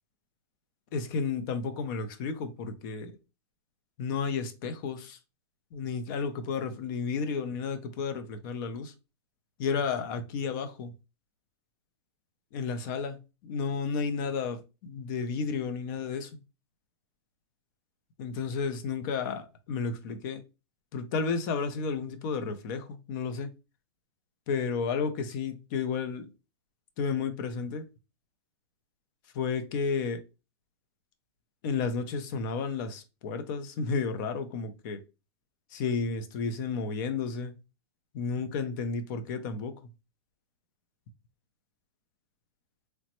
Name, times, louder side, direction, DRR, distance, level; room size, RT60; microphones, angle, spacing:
voice 1, 0.9-3.2 4.0-5.2 5.7-8.9 9.6-10.9 12.5-16.3 18.2-20.4 20.9-23.5 24.5-26.3 27.0-27.9 29.3-30.2 31.6-35.0 35.7-37.6 38.1-39.8, left 5 dB, 50° left, 0.6 m, -32 dB
3.1 x 2.0 x 2.9 m
hypercardioid pair, 125°, 14 cm